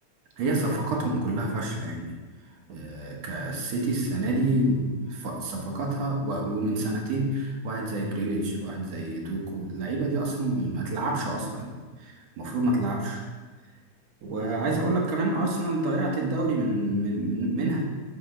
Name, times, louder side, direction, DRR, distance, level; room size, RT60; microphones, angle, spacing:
voice 1, 0.4-2.2 2.7-11.7 12.0-13.2 14.2-17.8, right 2 dB, 65° right, 0 dB, 2.1 m, -28 dB
6.2 x 5.2 x 6.3 m, 1.4 s
omnidirectional pair, 3.5 m